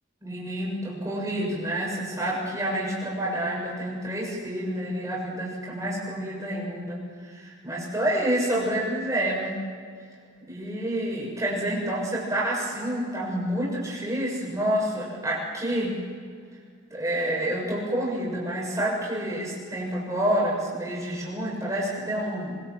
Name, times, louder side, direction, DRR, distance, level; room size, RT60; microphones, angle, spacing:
voice 1, 0.2-9.6 10.5-16.0 16.9-22.5, right 1 dB, 15° right, -3 dB, 7.0 m, -28 dB
24.0 x 23.0 x 7.6 m, 2.1 s
head